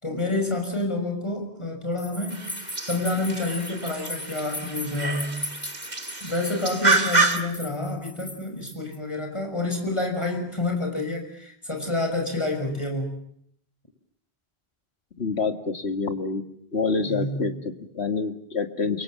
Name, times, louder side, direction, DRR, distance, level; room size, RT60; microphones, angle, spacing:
voice 1, 0.0-2.5 2.8-5.5 6.2-13.2 17.0-17.5, left 2 dB, 25° left, 2 dB, 6.1 m, -28 dB
sound 1, 2.0-9.0, equal, 5° left, 4.1 m, -38 dB
sound 2, 2.3-7.4, right 3 dB, 40° right, 2.4 m, -27 dB
voice 2, 15.2-16.4 16.7-19.0, left 4 dB, 80° left, 7 dB, 2.3 m, -27 dB
28.0 x 23.5 x 7.7 m, 0.69 s
omnidirectional pair, 1.1 m